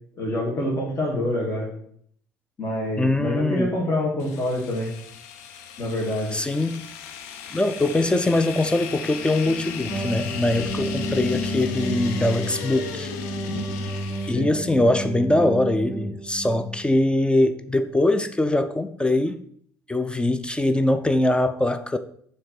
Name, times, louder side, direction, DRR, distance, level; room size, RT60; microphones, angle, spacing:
voice 1, 0.2-1.7 2.6-4.9 5.8-6.3 14.3-14.5, left 1 dB, 30° left, 2.0 m, -26 dB
voice 2, 3.0-3.7 6.3-6.8 7.5-13.1 14.3-19.4 19.9-22.0, left 2 dB, 10° left, 0.5 m, -22 dB
sound 1, 4.2-14.3, left 8 dB, 70° left, 0.7 m, -35 dB
sound 2, 9.9-17.0, right 3 dB, 15° right, 2.3 m, -32 dB
6.4 x 3.3 x 6.0 m
hypercardioid pair, 60°, 9 cm